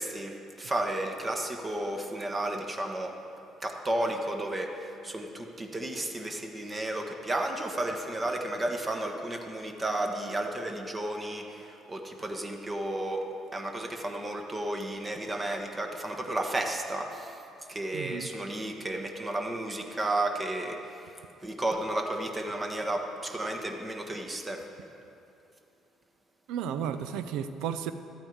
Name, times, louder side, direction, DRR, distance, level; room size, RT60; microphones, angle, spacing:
voice 1, 0.0-3.2 3.6-17.4 17.7-21.1 21.4-24.6, right 1 dB, 25° right, 3 dB, 1.3 m, -33 dB
voice 2, 17.9-18.3 26.5-27.9, right 8 dB, 65° right, 11 dB, 0.5 m, -33 dB
12.5 x 8.7 x 4.7 m, 2.7 s
hypercardioid pair, 50°, 0 cm